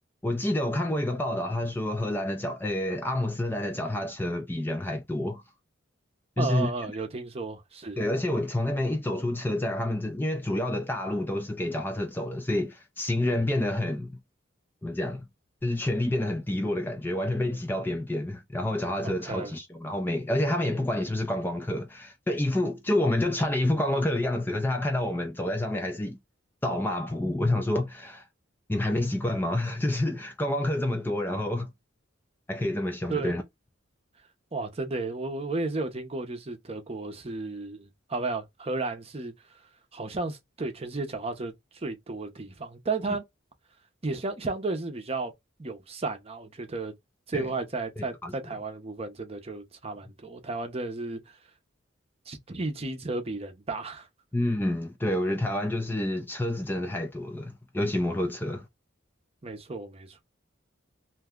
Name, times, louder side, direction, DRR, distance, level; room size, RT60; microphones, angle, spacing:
voice 1, 0.2-5.4 6.4-6.9 8.0-14.2 14.8-15.3 15.6-26.2 26.6-28.2 28.7-31.7 32.5-33.4 47.3-47.5 48.0-48.3 54.3-58.7, left 1 dB, 10° left, 0.4 m, -28 dB
voice 2, 6.4-8.0 19.0-19.6 33.1-33.3 34.5-39.3 39.9-43.2 44.0-45.3 45.6-46.9 47.3-51.4 52.3-54.1 59.4-60.2, right 3 dB, 30° right, 0.7 m, -33 dB
2.6 x 2.1 x 3.6 m
head